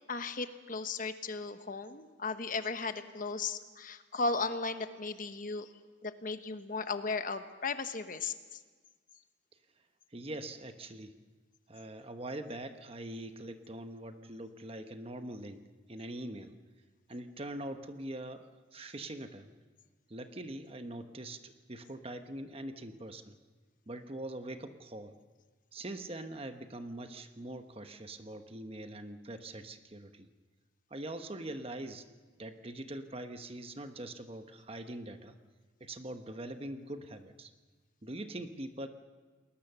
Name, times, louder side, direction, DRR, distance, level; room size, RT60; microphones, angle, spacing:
voice 1, 0.1-5.7 6.0-8.6, left 4 dB, 45° left, 9 dB, 1.2 m, -36 dB
voice 2, 10.1-11.2 11.7-15.6 15.9-16.5 17.1-19.5 20.1-23.4 23.9-25.1 25.7-30.3 30.9-32.0 32.4-35.3 35.8-37.5 38.0-38.9, right 1 dB, 30° right, 8 dB, 1.1 m, -43 dB
29.0 x 20.5 x 6.9 m, 1.4 s
head